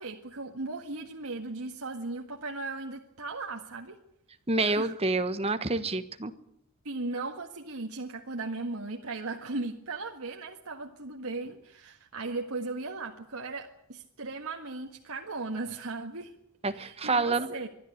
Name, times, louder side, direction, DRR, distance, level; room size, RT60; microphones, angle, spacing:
voice 1, 0.0-4.0 4.6-4.9 6.9-16.3 16.7-17.7, right 3 dB, 80° right, 2 dB, 1.8 m, -37 dB
voice 2, 4.5-6.3 16.6-17.5, right 3 dB, 30° right, 10 dB, 1.3 m, -28 dB
24.0 x 12.5 x 9.9 m, 0.73 s
head